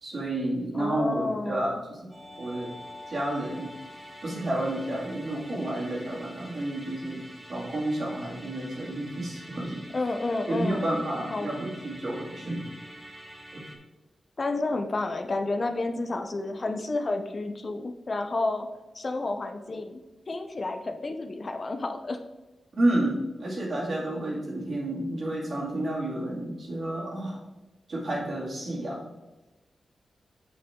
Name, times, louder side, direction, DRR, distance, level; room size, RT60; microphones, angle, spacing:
voice 1, 0.0-2.1 2.4-2.7 3.1-3.7 4.2-9.8 10.5-12.7 13.5-13.6 22.7-27.4 27.9-29.1, right 1 dB, 45° right, -3 dB, 2.4 m, -30 dB
voice 2, 0.7-1.8 9.9-11.0 11.3-11.5 14.4-18.7 18.9-20.0 20.3-22.2, left 2 dB, 35° left, 6 dB, 0.5 m, -30 dB
Musical instrument, 2.1-13.8, equal, 20° right, 1.5 m, -46 dB
8.4 x 5.7 x 3.6 m, 1.1 s
wide cardioid pair, 140°, 0 cm